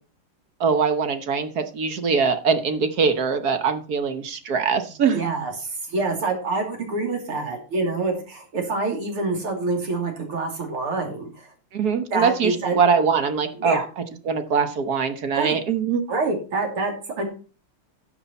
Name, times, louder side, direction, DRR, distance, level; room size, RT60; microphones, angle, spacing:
voice 1, 0.6-5.3 11.7-13.8 14.2-16.0, right 5 dB, 55° right, 9 dB, 1.4 m, -22 dB
voice 2, 5.1-11.5 12.1-12.8 13.6-13.9 15.4-15.6 16.1-17.2, right 3 dB, 85° right, 3 dB, 3.7 m, -26 dB
12.5 x 7.2 x 4.3 m, 0.36 s
omnidirectional pair, 2.4 m